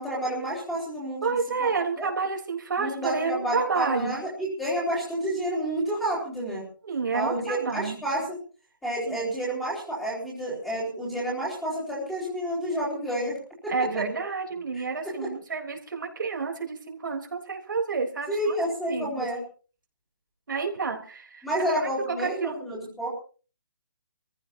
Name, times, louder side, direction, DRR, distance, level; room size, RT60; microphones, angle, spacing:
voice 1, 0.0-1.7 2.0-2.1 2.8-6.6 7.1-8.4 8.8-13.4 13.6-13.7 15.0-15.3 18.3-19.4 21.4-23.1, right 1 dB, 5° left, -7 dB, 4.1 m, -30 dB
voice 2, 1.2-4.1 6.8-8.0 9.1-9.2 13.7-18.6 18.9-19.3 20.5-21.5 21.8-22.6, right 5 dB, 70° right, 2 dB, 3.5 m, -29 dB
27.0 x 15.0 x 2.7 m, 0.38 s
hypercardioid pair, 175°, 11 cm